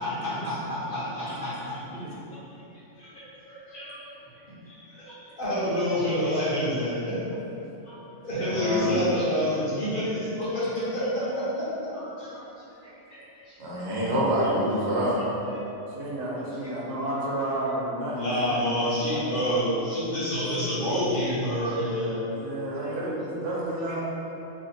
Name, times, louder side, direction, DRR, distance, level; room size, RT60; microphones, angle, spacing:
voice 1, 0.0-1.8 2.5-2.6 3.0-3.2 3.5-3.9 4.7-7.2 7.8-8.0 8.2-11.7 11.9-12.4 13.1-13.8 15.2-15.6 18.1-22.2 22.8-22.9, equal, 50° left, -10 dB, 1.0 m, -28 dB
voice 2, 8.4-8.9 13.6-15.2, equal, 65° right, -6 dB, 1.0 m, -26 dB
voice 3, 15.9-19.7 22.3-24.0, right 1 dB, 85° right, -6 dB, 1.1 m, -32 dB
2.8 x 2.6 x 4.0 m, 3.0 s
omnidirectional pair, 1.2 m